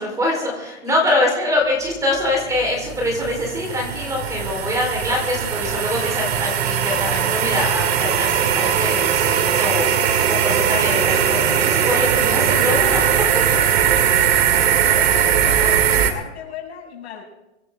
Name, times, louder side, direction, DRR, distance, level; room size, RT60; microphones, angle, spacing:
voice 1, 0.0-9.9 10.3-13.3, left 1 dB, 10° right, 0 dB, 4.8 m, -24 dB
sound 1, 2.3-16.1, right 9 dB, 65° right, 2.3 m, -19 dB
voice 2, 14.8-17.2, left 8 dB, 70° left, -1 dB, 7.1 m, -36 dB
25.5 x 11.0 x 3.9 m, 0.97 s
hypercardioid pair, 145°, 34 cm